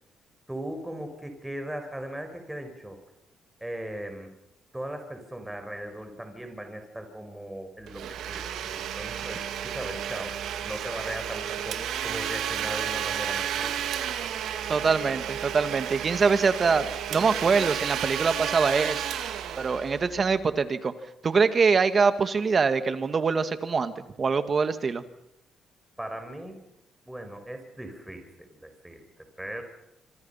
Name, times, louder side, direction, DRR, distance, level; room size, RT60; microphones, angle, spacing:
voice 1, 0.5-3.0 3.6-4.3 4.7-10.4 10.6-14.0 26.0-26.6 27.1-29.6, right 1 dB, 5° right, 6 dB, 5.3 m, -38 dB
Domestic sounds home sounds, 7.9-20.4, right 9 dB, 80° right, 2.4 m, -32 dB
voice 2, 14.7-19.1 19.6-20.9 21.2-23.9 24.2-25.0, right 5 dB, 40° right, 10 dB, 2.0 m, -24 dB
26.5 x 25.5 x 5.8 m, 0.81 s
cardioid pair, 90°, 0 cm